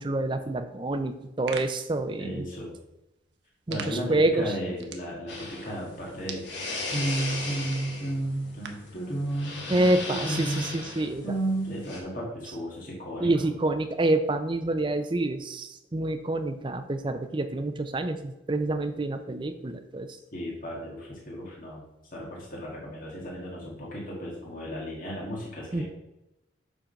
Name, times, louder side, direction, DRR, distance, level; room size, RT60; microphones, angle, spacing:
voice 1, 0.0-2.5 3.7-4.5 9.7-11.2 13.2-20.2 25.7-25.8, right 2 dB, 25° right, 9 dB, 0.5 m, -27 dB
sound 1, 1.1-8.9, right 5 dB, 60° right, 0.8 m, -46 dB
voice 2, 2.2-2.7 3.7-6.6 6.9-10.7 11.2-13.5 20.3-21.8 22.1-25.8, right 1 dB, 45° left, -3 dB, 1.8 m, -33 dB
sound 2, 5.3-12.0, left 2 dB, 65° left, 1.5 m, -37 dB
7.2 x 3.8 x 5.2 m, 0.90 s
head